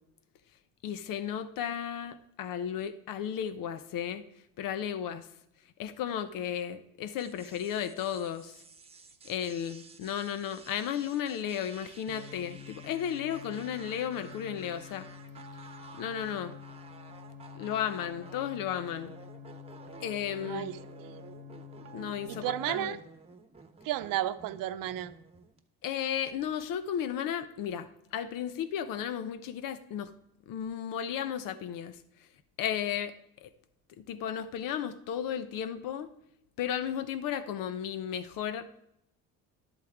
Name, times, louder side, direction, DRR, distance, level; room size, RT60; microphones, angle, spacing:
voice 1, 0.8-4.2 4.6-5.3 5.8-8.6 9.2-15.1 16.0-16.6 17.5-19.1 20.0-20.7 21.9-23.0 25.8-30.1 30.5-32.0 32.6-33.1 33.4-33.5 34.0-36.1 36.6-38.7, left 9 dB, 70° left, 12 dB, 0.9 m, -34 dB
sound 1, 7.2-25.6, right 4 dB, 15° right, 1.1 m, -53 dB
sound 2, 12.1-22.7, left 5 dB, 45° right, 0.9 m, -48 dB
voice 2, 20.4-21.2 22.3-23.0 23.8-25.1, right 13 dB, 70° right, 11 dB, 0.8 m, -33 dB
12.0 x 8.2 x 3.6 m, 0.79 s
supercardioid pair, 85°, 34 cm